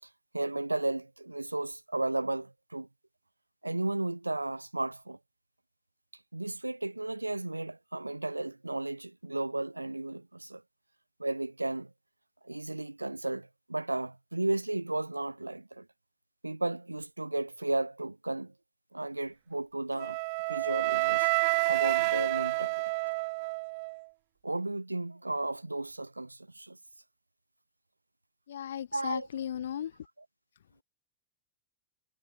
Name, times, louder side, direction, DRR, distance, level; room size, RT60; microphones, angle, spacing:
voice 1, 0.3-2.9 3.6-5.2 6.3-10.6 11.2-11.9 12.4-15.9 16.4-18.5 18.9-20.2 20.5-21.3 21.6-22.9 24.4-26.8 28.9-29.3 30.2-30.3, right 2 dB, 85° right, 3.6 m, -34 dB
Wind instrument woodwind instrument, 20.0-24.0, right 29 dB, 45° right, 0.5 m, -29 dB
voice 2, 28.5-29.9, left 9 dB, 65° left, 0.6 m, -36 dB
figure-of-eight pair, 90°, 0 cm